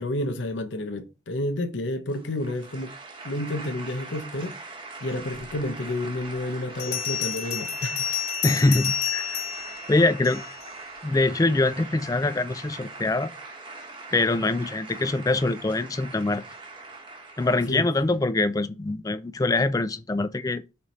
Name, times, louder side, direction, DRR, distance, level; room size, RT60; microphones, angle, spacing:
voice 1, 0.0-2.9 3.2-4.5 5.0-8.1 17.7-17.9, left 1 dB, 75° left, 0.7 m, -30 dB
sound 1, 2.1-18.1, right 3 dB, 25° right, 1.0 m, -42 dB
Bell, 5.6-5.7 6.8-10.7, left 8 dB, 55° left, 2.1 m, -30 dB
voice 2, 8.4-9.4 9.9-10.4 11.0-13.3 14.1-16.4 17.4-20.6, left 2 dB, 20° left, 0.3 m, -24 dB
7.2 x 3.3 x 4.1 m
head